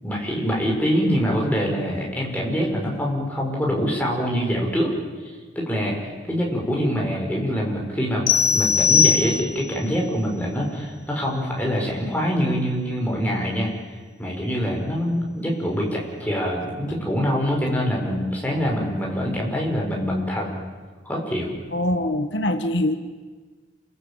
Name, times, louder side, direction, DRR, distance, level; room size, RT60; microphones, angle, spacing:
voice 1, 0.0-4.9 5.5-13.7 14.2-20.6 21.0-21.5, equal, 10° left, -2 dB, 6.1 m, -24 dB
sound 1, 8.3-9.8, left 7 dB, 50° left, 1.7 m, -19 dB
voice 2, 21.7-23.0, left 1 dB, 75° left, 8 dB, 1.5 m, -23 dB
29.0 x 22.0 x 9.2 m, 1.4 s
head